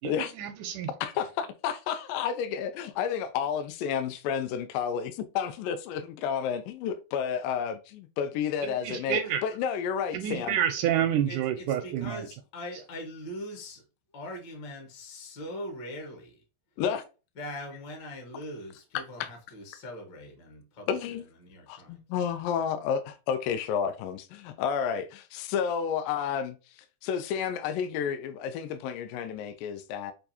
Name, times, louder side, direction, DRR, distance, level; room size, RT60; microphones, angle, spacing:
voice 1, 0.0-0.9 8.6-9.4 10.1-12.3, right 10 dB, 80° right, 1.8 m, -29 dB
voice 2, 1.0-10.6 16.8-17.1 19.2-19.3 20.9-21.2 21.7-26.6 27.0-30.1, left 7 dB, 80° left, 2.2 m, -31 dB
voice 3, 11.3-13.8 14.1-16.4 17.3-21.0 21.4-22.0, left 1 dB, 60° left, 1.1 m, -41 dB
6.7 x 2.6 x 2.7 m
omnidirectional pair, 3.9 m